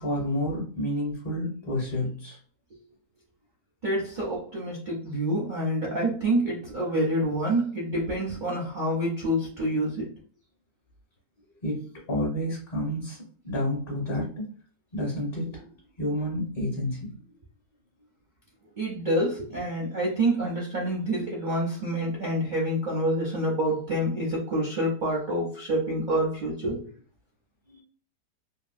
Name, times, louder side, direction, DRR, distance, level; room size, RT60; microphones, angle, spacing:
voice 1, 0.0-2.4 11.6-13.2 13.4-14.3 14.9-15.7 16.0-17.2 27.7-27.8, left 1 dB, 40° left, -3 dB, 1.0 m, -30 dB
voice 2, 3.8-10.1 18.8-26.9, right 1 dB, 50° right, -4 dB, 0.5 m, -27 dB
2.9 x 2.7 x 2.5 m, 0.42 s
omnidirectional pair, 1.8 m